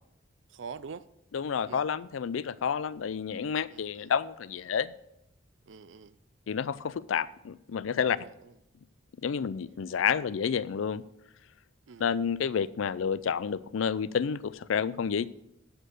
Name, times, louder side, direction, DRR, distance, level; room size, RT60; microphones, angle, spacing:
voice 1, 0.5-1.1 1.7-1.9 3.7-4.1 5.7-6.2 8.0-8.6 11.9-12.1, right 5 dB, 70° right, 0.4 m, -45 dB
voice 2, 1.3-4.9 6.5-8.2 9.2-11.0 12.0-15.3, left 7 dB, 80° left, 0.4 m, -30 dB
12.5 x 4.4 x 6.5 m
head